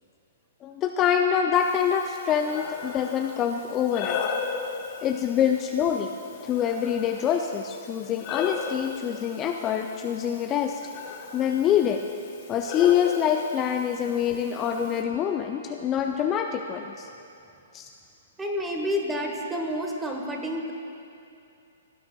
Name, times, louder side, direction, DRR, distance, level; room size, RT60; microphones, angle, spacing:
voice 1, 0.6-4.2 5.0-6.1 6.4-10.8 11.3-12.0 12.5-17.1 17.7-17.9, left 9 dB, 25° left, 4 dB, 0.4 m, -25 dB
Breathing, 1.6-15.0, left 6 dB, 45° left, 1.0 m, -37 dB
voice 2, 18.4-20.7, equal, 10° right, 1 dB, 1.4 m, -29 dB
17.0 x 9.5 x 2.3 m, 2.7 s
hypercardioid pair, 120°, 0 cm